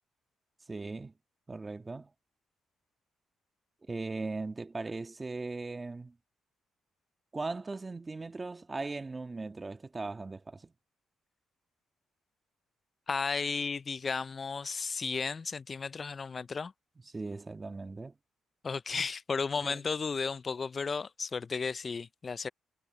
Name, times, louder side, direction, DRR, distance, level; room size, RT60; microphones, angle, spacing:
voice 1, 0.7-1.1 1.5-2.1 3.9-6.1 7.3-10.7 17.1-18.1 19.6-19.8, right 3 dB, 25° right, 1.7 m, -38 dB
voice 2, 13.1-16.7 18.6-22.5, left 5 dB, 35° left, 0.5 m, -34 dB
cardioid pair, 90°, 0 cm